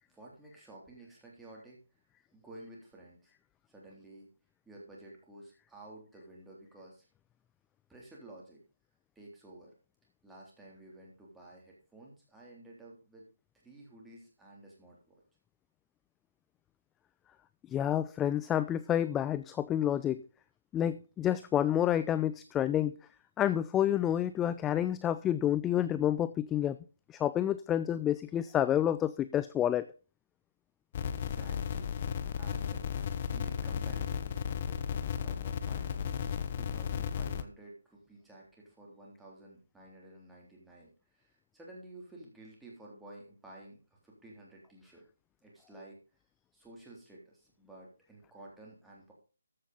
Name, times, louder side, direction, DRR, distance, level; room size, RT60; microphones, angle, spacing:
voice 1, 0.1-1.8 2.3-3.3 3.7-4.3 4.7-7.0 7.9-8.6 9.2-9.7 10.2-13.3 13.6-15.1 31.1-31.9 32.3-32.8 33.3-34.9 35.2-43.8 44.0-45.1 45.4-46.0 46.5-49.1, right 2 dB, 5° right, -3 dB, 3.5 m, -53 dB
voice 2, 17.7-20.2 20.7-23.0 23.4-26.8 27.1-29.9, left 11 dB, 10° left, 13 dB, 0.4 m, -29 dB
sound 1, 30.9-37.4, left 8 dB, 40° left, 1.0 m, -34 dB
14.0 x 6.4 x 5.4 m, 0.35 s
figure-of-eight pair, 150°, 0 cm